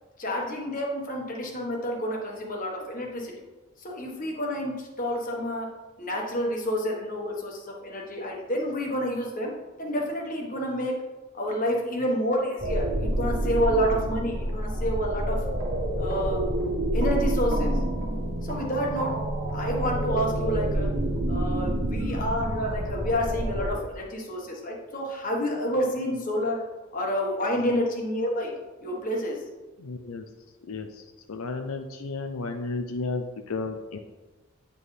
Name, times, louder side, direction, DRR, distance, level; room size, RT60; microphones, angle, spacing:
voice 1, 0.2-3.3 3.8-5.7 6.0-9.5 9.8-10.9 11.3-15.4 16.0-16.4 16.9-17.7 18.4-19.1 19.5-20.9 21.3-26.6 26.9-28.5 28.8-29.4, equal, 40° left, -1 dB, 1.3 m, -29 dB
sound 1, 12.6-23.7, right 1 dB, 65° right, 1.4 m, -28 dB
voice 2, 29.8-30.2 30.7-31.0 31.3-34.0, left 3 dB, 85° left, 5 dB, 0.5 m, -33 dB
8.9 x 4.5 x 3.2 m, 1.2 s
head